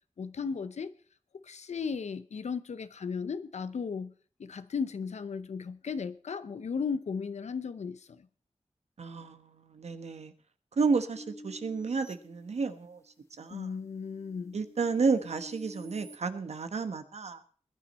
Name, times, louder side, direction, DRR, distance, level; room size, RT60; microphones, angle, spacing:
voice 1, 0.2-0.9 1.3-4.1 4.4-8.3 13.5-14.6, left 5 dB, 85° left, 0.8 m, -35 dB
voice 2, 9.0-10.3 10.8-13.0 13.4-13.7 14.5-17.4, right 4 dB, 75° right, 1.2 m, -31 dB
sound 1, 11.1-13.1 13.6-16.2, equal, 25° left, 1.4 m, -50 dB
20.5 x 10.5 x 4.3 m
wide cardioid pair, 115°, 11 cm